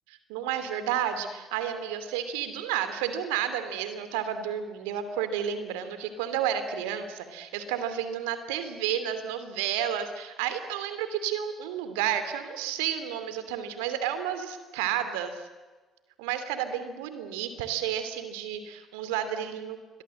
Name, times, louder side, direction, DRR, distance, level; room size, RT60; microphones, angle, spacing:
voice 1, 0.1-15.5 16.2-19.8, right 9 dB, 75° right, 10 dB, 2.7 m, -31 dB
28.0 x 23.0 x 7.8 m, 1.3 s
hypercardioid pair, 50°, 0 cm